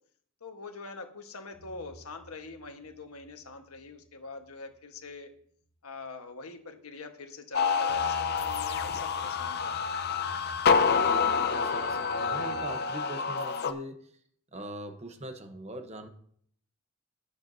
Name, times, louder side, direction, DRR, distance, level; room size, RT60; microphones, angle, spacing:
voice 1, 0.4-5.3 5.8-10.3, left 3 dB, 85° left, 5 dB, 1.4 m, -44 dB
sound 1, 1.5-4.1 4.4-4.7 5.0-5.1 7.6-12.7, equal, 5° left, 2.9 m, -50 dB
sound 2, 7.5-13.7, left 5 dB, 45° left, 0.6 m, -27 dB
voice 2, 10.8-14.1 14.5-16.1, right 1 dB, 30° right, 6 dB, 0.9 m, -42 dB
16.5 x 6.9 x 2.7 m, 0.64 s
head